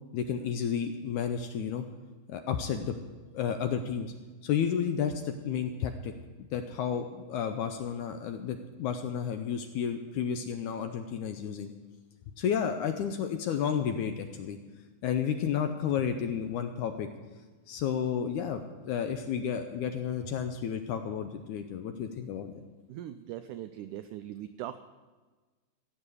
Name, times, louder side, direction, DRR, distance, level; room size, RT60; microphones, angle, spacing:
voice 1, 0.1-1.9 2.3-3.0 3.3-4.1 4.4-6.1 6.5-11.7 12.4-14.6 15.0-17.1 17.7-22.5, left 8 dB, 80° left, 6 dB, 1.9 m, -31 dB
voice 2, 22.9-24.8, right 12 dB, 90° right, 10 dB, 1.8 m, -40 dB
16.0 x 7.0 x 8.3 m, 1.3 s
omnidirectional pair, 4.1 m